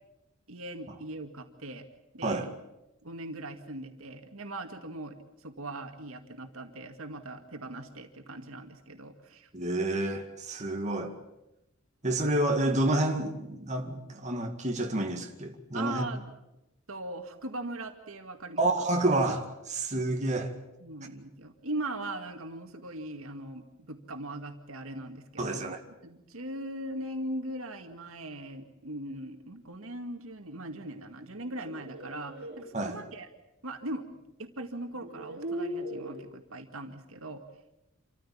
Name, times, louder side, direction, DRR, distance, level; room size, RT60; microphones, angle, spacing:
voice 1, 0.5-1.8 2.1-2.5 3.0-5.2 5.4-9.5 15.7-16.3 16.9-18.7 20.8-25.6 26.0-33.3 33.6-34.1 34.4-37.4, right 1 dB, 75° right, 2.1 m, -40 dB
voice 2, 9.5-11.2 12.0-16.0 18.6-20.5 25.4-25.8 32.7-33.0, right 2 dB, 35° right, 2.2 m, -29 dB
sound 1, 31.3-32.6 34.1-34.2 34.9-36.3, equal, 55° right, 3.7 m, -39 dB
27.5 x 14.5 x 8.6 m
head